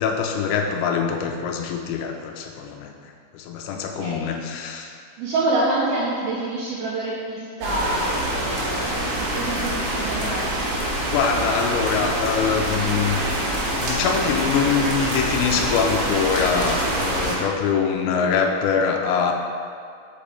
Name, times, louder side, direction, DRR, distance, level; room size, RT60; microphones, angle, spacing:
voice 1, 0.0-5.0 8.7-9.0 11.0-13.2 13.6-19.3, left 6 dB, 85° left, 3 dB, 2.9 m, -24 dB
voice 2, 3.7-4.3 5.2-8.9 9.2-10.6, right 2 dB, 75° right, -5 dB, 2.3 m, -27 dB
sound 1, 7.6-17.4, right 1 dB, 60° right, 2.6 m, -25 dB
7.2 x 5.1 x 4.3 m, 2.2 s
omnidirectional pair, 5.2 m